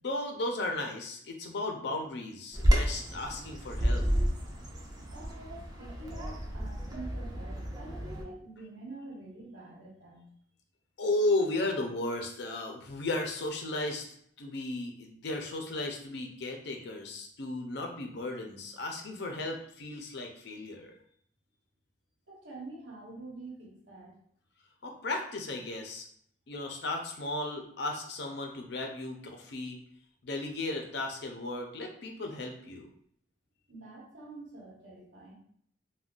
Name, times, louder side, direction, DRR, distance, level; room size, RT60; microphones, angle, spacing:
voice 1, 0.0-4.0 11.0-14.0 14.4-20.9 24.8-26.1 26.5-29.8 30.2-32.9, left 2 dB, 65° left, 2 dB, 0.5 m, -35 dB
Bird vocalization bird call bird song, 2.5-8.2, equal, 20° right, 0.5 m, -30 dB
voice 2, 5.1-10.2 22.3-24.2 33.7-35.3, right 2 dB, 85° right, -3 dB, 1.0 m, -46 dB
2.4 x 2.2 x 3.6 m, 0.66 s
head